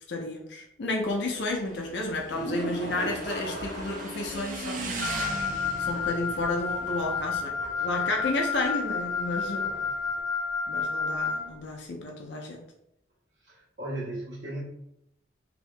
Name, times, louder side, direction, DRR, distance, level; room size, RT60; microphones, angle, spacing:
voice 1, 0.1-4.9 5.8-9.6 10.7-12.6, left 2 dB, 60° left, 1 dB, 0.5 m, -32 dB
Motorcycle / Engine, 1.0-10.2, right 2 dB, 40° right, 0.5 m, -40 dB
sound 1, 2.2-4.5 4.8-4.9 5.4-5.5 9.2-9.3, right 1 dB, 20° right, 1.3 m, -35 dB
Wind instrument woodwind instrument, 5.0-11.4, left 5 dB, 15° left, 0.7 m, -30 dB
voice 2, 9.6-10.0 13.4-14.6, right 1 dB, 60° right, -8 dB, 1.4 m, -37 dB
2.7 x 2.7 x 3.2 m, 0.79 s
head